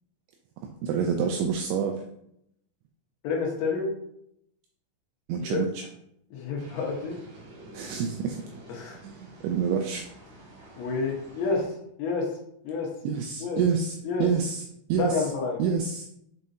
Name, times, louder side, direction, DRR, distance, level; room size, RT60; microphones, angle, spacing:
voice 1, 0.6-2.0 5.3-5.9 7.7-8.4 9.0-10.1 13.0-14.6 14.9-15.3 15.6-16.1, right 6 dB, 85° right, 4 dB, 2.6 m, -28 dB
voice 2, 3.2-3.9 5.5-5.6 6.3-7.2 8.7-9.0 10.8-12.4 12.6-12.9 13.4-13.6 14.0-14.3 15.0-15.6, left 4 dB, 75° left, -1 dB, 3.0 m, -29 dB
sound 1, 6.6-11.6, right 1 dB, 55° right, 2.0 m, -49 dB
7.6 x 5.4 x 2.6 m, 0.76 s
omnidirectional pair, 5.7 m